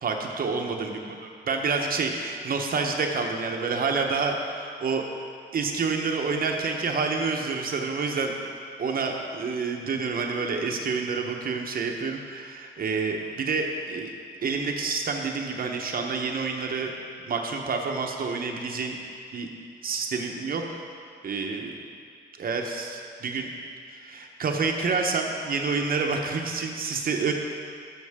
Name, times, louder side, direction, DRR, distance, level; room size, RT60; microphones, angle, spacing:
voice 1, 0.0-5.0 5.5-8.3 8.8-14.1 14.4-16.9 17.2-19.0 19.3-19.5 19.8-20.6 21.2-21.7 22.4-23.5 24.0-27.3, right 4 dB, 45° right, 2 dB, 1.1 m, -28 dB
13.0 x 6.4 x 3.6 m, 2.3 s
cardioid pair, 90°, 20 cm